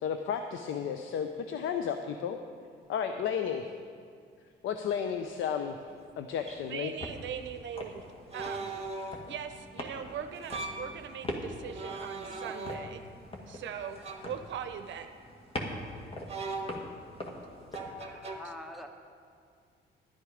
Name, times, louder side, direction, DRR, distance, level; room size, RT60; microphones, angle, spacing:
voice 1, 0.0-2.4 2.9-3.7 4.6-5.7 6.2-6.9, left 7 dB, 80° left, 7 dB, 0.6 m, -33 dB
sound 1, 5.5-5.6 6.5-6.6 8.3-9.3 10.4-10.9 11.7-13.1 14.0-14.4 16.3-17.1 17.7-18.4, right 3 dB, 30° right, 1.4 m, -39 dB
sound 2, 6.3-17.9, left 1 dB, 30° left, 1.8 m, -43 dB
voice 2, 6.7-8.1 8.3-8.7 9.3-13.0 13.5-15.1, right 8 dB, 70° right, 8 dB, 0.7 m, -40 dB
voice 3, 12.2-12.5 13.0-13.1 13.4-13.6 15.7-16.3 17.2-18.9, equal, ahead, 5 dB, 1.1 m, -50 dB
12.0 x 9.9 x 5.0 m, 2.2 s
cardioid pair, 90°, 20 cm